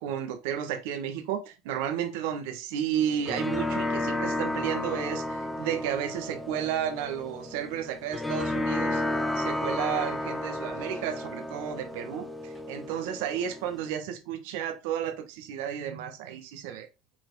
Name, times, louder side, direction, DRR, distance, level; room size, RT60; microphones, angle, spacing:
voice 1, 0.0-9.0 9.3-16.9, right 9 dB, 75° right, 1.6 m, -32 dB
sound 1, 2.9-13.9, left 1 dB, 5° left, 1.0 m, -32 dB
6.1 x 4.4 x 4.8 m
supercardioid pair, 105°, 0 cm